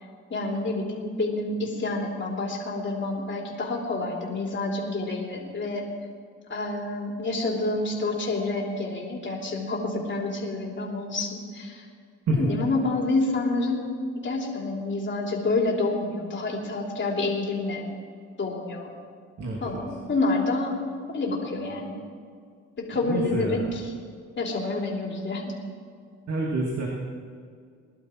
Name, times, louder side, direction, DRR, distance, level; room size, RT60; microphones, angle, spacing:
voice 1, 0.3-5.9 6.5-11.8 12.4-13.9 14.1-17.8 18.4-18.9 19.6-20.7 21.1-21.9 22.8-23.6 24.4-25.5, left 2 dB, 40° left, -1 dB, 3.5 m, -28 dB
voice 2, 19.4-19.8 23.0-23.7 26.3-26.9, right 2 dB, 60° right, -2 dB, 2.8 m, -28 dB
21.0 x 11.5 x 4.5 m, 2.1 s
cardioid pair, 90°, 30 cm